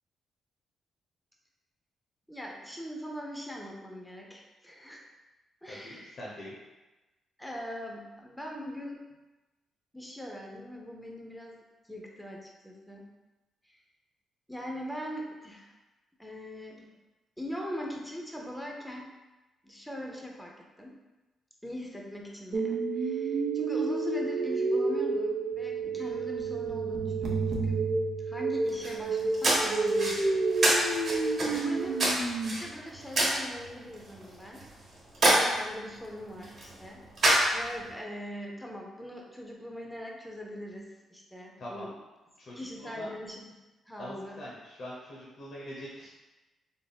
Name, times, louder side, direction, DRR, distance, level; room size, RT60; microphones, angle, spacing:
voice 1, 2.3-5.0 5.6-6.2 7.4-9.0 9.9-11.6 11.9-13.1 13.6-13.8 14.5-15.7 16.2-16.9 17.4-19.1 19.6-20.9 21.6-27.8 28.2-30.4 31.4-32.0 32.4-34.6 35.2-37.0 37.5-41.9 42.6-43.5 43.9-44.4, equal, 5° left, -1 dB, 0.7 m, -41 dB
voice 2, 5.7-6.6 41.6-41.9 42.4-43.1 44.0-46.1, left 1 dB, 60° left, -5 dB, 0.8 m, -43 dB
sound 1, 22.5-32.5, right 3 dB, 70° right, 0.7 m, -30 dB
sound 2, 28.7-37.9, right 1 dB, 55° right, 1.2 m, -29 dB
3.5 x 2.0 x 4.1 m, 1.1 s
cardioid pair, 85°, 0 cm